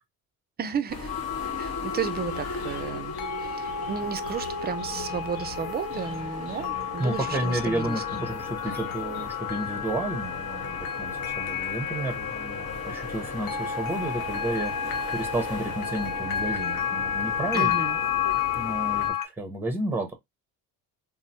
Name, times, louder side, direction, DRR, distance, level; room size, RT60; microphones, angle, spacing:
voice 1, 0.6-1.1 1.6-8.0 17.5-18.0, right 7 dB, 30° right, 0.4 m, -33 dB
sound 1, 0.9-19.1, left 3 dB, 45° left, 1.1 m, -37 dB
sound 2, 1.1-19.3, left 8 dB, 65° left, 0.6 m, -32 dB
sound 3, 2.3-9.2, left 3 dB, 85° left, 0.9 m, -45 dB
voice 2, 7.0-14.7 15.1-17.8 18.5-20.1, right 1 dB, 5° right, 0.8 m, -31 dB
3.0 x 2.0 x 2.7 m
cardioid pair, 95°, 36 cm